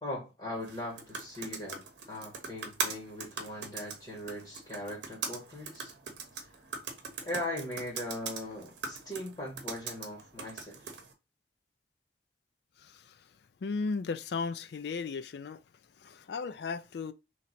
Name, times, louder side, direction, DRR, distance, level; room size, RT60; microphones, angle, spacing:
voice 1, 0.0-5.9 6.3-6.4 7.2-10.9, left 1 dB, 25° left, 1.6 m, -40 dB
sound 1, 0.6-11.1, right 5 dB, 70° right, 0.8 m, -41 dB
voice 2, 12.8-13.1 13.6-15.6 16.0-17.1, left 4 dB, 60° left, 0.4 m, -35 dB
3.2 x 2.8 x 4.1 m
head